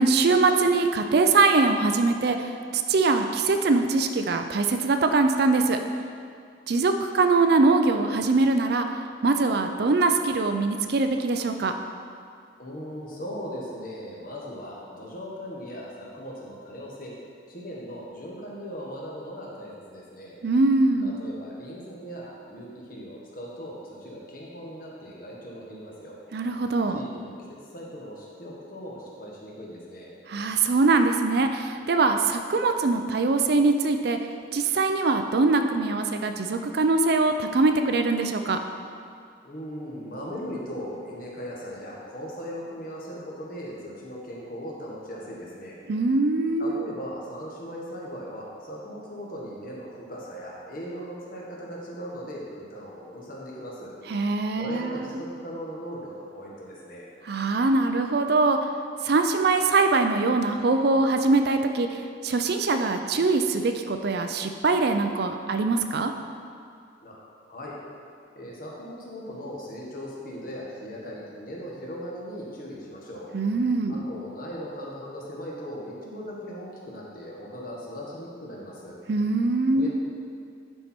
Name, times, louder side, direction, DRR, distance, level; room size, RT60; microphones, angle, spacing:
voice 1, 0.0-2.5 2.7-5.8 6.7-8.9 9.2-11.7 20.4-21.2 26.3-27.0 30.3-34.2 34.5-38.6 45.9-46.9 54.1-55.1 57.2-58.6 59.0-61.9 62.2-66.1 73.3-74.0 79.1-79.9, right 3 dB, 55° right, 6 dB, 0.4 m, -22 dB
voice 2, 12.6-17.1 17.5-20.4 21.0-26.2 26.9-27.4 27.7-30.1 39.4-45.8 46.6-53.9 54.6-57.1 67.0-67.2 67.5-67.8 68.3-73.3 73.9-79.0 79.7-79.9, equal, 45° left, -4 dB, 1.5 m, -38 dB
11.0 x 4.5 x 4.4 m, 2.3 s
head